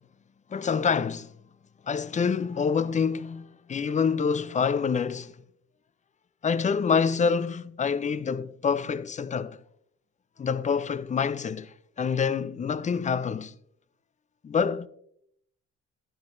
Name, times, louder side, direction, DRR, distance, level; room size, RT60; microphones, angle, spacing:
voice 1, 0.5-1.3 1.9-5.3 6.4-9.6 10.4-13.5 14.4-14.9, left 6 dB, 25° left, 0.4 m, -27 dB
10.0 x 9.8 x 2.6 m
cardioid pair, 90°, 30 cm